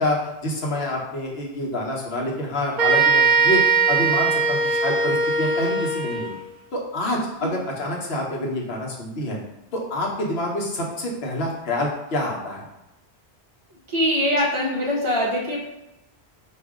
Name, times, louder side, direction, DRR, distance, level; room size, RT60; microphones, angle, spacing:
voice 1, 0.0-3.6 3.9-6.4 6.7-9.4 9.7-12.6, left 1 dB, 65° left, -2 dB, 1.2 m, -27 dB
sound 1, 2.8-6.4, right 4 dB, 55° right, 0.6 m, -20 dB
voice 2, 13.9-15.6, equal, 30° right, -4 dB, 1.0 m, -22 dB
4.9 x 2.6 x 3.6 m, 0.92 s
omnidirectional pair, 1.1 m